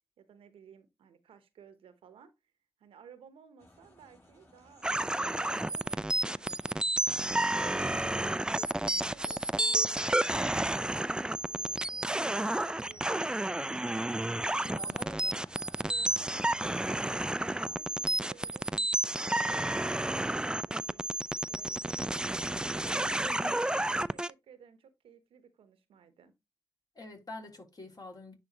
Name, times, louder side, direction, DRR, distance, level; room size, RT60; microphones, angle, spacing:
voice 1, 0.2-2.3 2.8-6.8 7.4-10.9 11.5-13.7 14.3-14.9 15.8-17.1 17.5-21.1 21.5-23.5 23.9-26.3, right 7 dB, 85° right, 0.9 m, -57 dB
sound 1, 3.6-17.8, left 1 dB, 25° left, 4.4 m, -57 dB
sound 2, 4.8-24.3, right 1 dB, 10° right, 0.3 m, -31 dB
voice 2, 14.7-15.4 23.1-23.6 26.9-28.4, left 2 dB, 45° left, 3.1 m, -46 dB
10.0 x 3.6 x 2.9 m
supercardioid pair, 40°, 9 cm